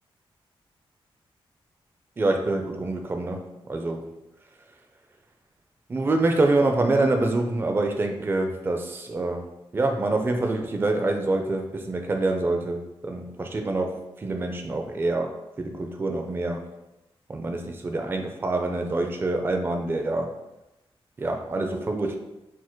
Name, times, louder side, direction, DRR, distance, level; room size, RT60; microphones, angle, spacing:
voice 1, 2.2-4.1 5.9-9.4 9.7-15.3 15.6-16.6 17.3-20.3 21.2-22.2, right 2 dB, 25° right, 4 dB, 0.4 m, -26 dB
4.3 x 2.2 x 4.4 m, 0.93 s
wide cardioid pair, 160°, 10 cm